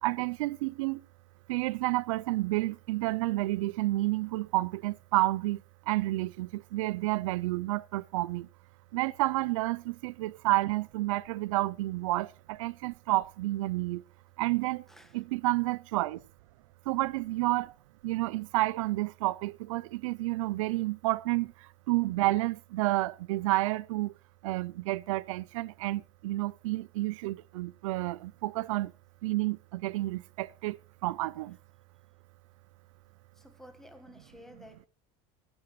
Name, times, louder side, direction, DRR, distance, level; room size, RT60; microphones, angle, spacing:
voice 1, 0.0-1.0 1.5-8.5 8.9-14.0 14.4-14.8 15.1-16.2 16.9-17.7 18.0-24.1 24.4-28.9 29.2-31.6, right 19 dB, 90° right, 0.5 m, -30 dB
voice 2, 33.4-34.9, left 1 dB, ahead, 1.4 m, -52 dB
24.5 x 8.8 x 3.2 m
supercardioid pair, 145°, 16 cm